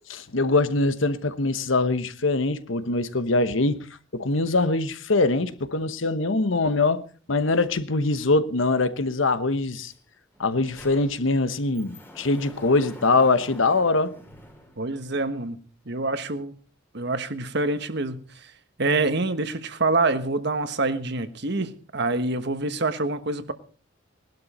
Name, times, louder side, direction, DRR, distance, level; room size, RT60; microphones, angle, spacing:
voice 1, 0.1-3.8 4.1-7.0 7.3-9.9 10.4-14.1, left 3 dB, 70° left, 1.0 m, -23 dB
Sliding door, 9.9-10.0 10.3-15.3, equal, 10° left, 2.1 m, -47 dB
voice 2, 14.8-15.6 15.9-16.5 16.9-18.5 18.8-23.5, right 3 dB, 55° right, 1.3 m, -26 dB
19.0 x 12.0 x 4.3 m
head